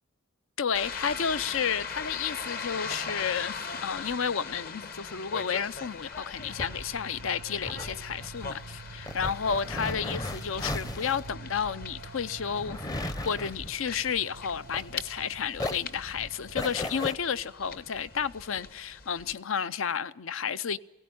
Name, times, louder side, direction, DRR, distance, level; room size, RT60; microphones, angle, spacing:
voice 1, 0.6-3.6 3.8-20.8, left 7 dB, 70° left, 0.6 m, -31 dB
sound 1, 0.7-19.3, left 5 dB, 45° left, 1.1 m, -41 dB
sound 2, 6.2-15.2 15.5-17.1, left 1 dB, 20° left, 0.7 m, -37 dB
sound 3, 6.4-17.0, right 4 dB, 85° right, 0.8 m, -48 dB
18.5 x 17.5 x 9.4 m
head